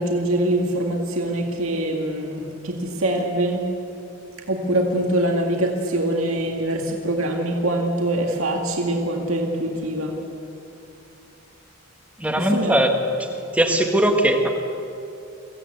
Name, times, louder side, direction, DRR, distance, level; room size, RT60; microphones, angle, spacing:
voice 1, 0.0-3.6 4.5-10.2 12.4-12.7, right 1 dB, 75° right, 0 dB, 2.1 m, -24 dB
voice 2, 12.2-12.9 13.2-14.5, right 1 dB, 5° right, 3 dB, 1.4 m, -20 dB
23.5 x 16.5 x 8.2 m, 2.7 s
head